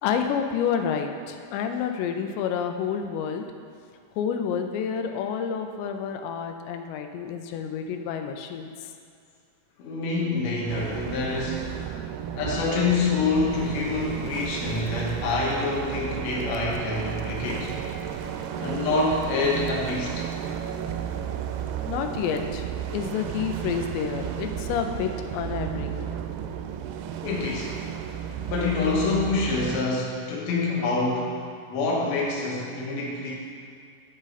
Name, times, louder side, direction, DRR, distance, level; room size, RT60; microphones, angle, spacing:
voice 1, 0.0-3.5 4.2-8.7 21.9-22.7 22.9-26.1, left 7 dB, 90° left, 5 dB, 2.9 m, -29 dB
voice 2, 9.8-12.0 12.4-17.7 18.6-20.2 27.2-27.7 28.5-31.4 31.7-33.4, left 3 dB, 60° left, -4 dB, 1.9 m, -26 dB
sound 1, 10.7-29.8, right 9 dB, 85° right, 2.3 m, -33 dB
10.0 x 6.4 x 4.1 m, 2.3 s
omnidirectional pair, 4.9 m